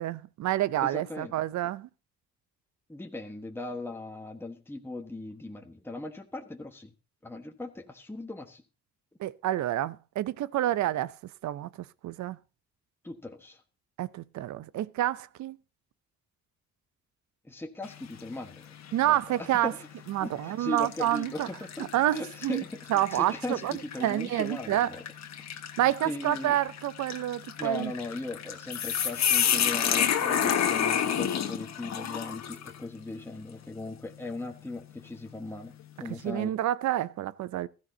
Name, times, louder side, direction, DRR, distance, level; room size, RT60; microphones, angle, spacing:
voice 1, 0.0-1.9 9.2-11.1 11.4-11.7 12.0-12.4 14.0-15.6 18.9-19.7 20.1-21.5 21.9-22.6 22.9-23.7 24.0-24.9 25.8-27.9 36.2-37.7, right 13 dB, 70° right, 0.6 m, -28 dB
voice 2, 0.8-1.4 2.9-6.9 7.2-8.6 13.0-13.6 17.4-18.7 19.0-19.9 20.2-25.0 25.8-26.6 27.6-36.5, left 2 dB, 5° left, 1.3 m, -38 dB
sound 1, 17.8-18.3 18.8-19.0 19.9-20.2 20.8-32.8, left 8 dB, 65° left, 1.5 m, -30 dB
15.5 x 14.0 x 2.8 m
cardioid pair, 90°, 30 cm